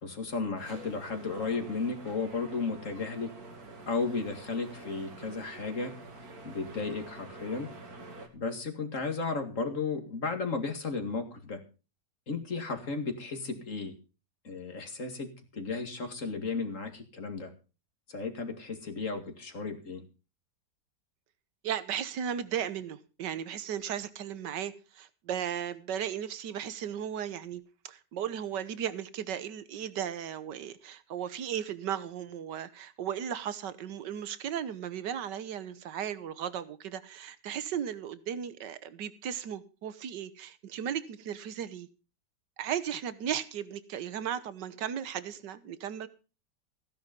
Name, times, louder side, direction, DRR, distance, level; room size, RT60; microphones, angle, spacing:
voice 1, 0.0-3.3 3.9-5.9 6.4-7.7 8.3-11.6 12.3-13.9 14.4-17.5 18.1-20.0, left 4 dB, 45° left, 2.5 m, -34 dB
sound 1, 0.6-8.3, right 2 dB, 60° right, 2.9 m, -47 dB
voice 2, 21.6-41.9 42.6-46.1, right 9 dB, 85° right, 1.7 m, -36 dB
16.0 x 10.5 x 5.2 m
omnidirectional pair, 1.8 m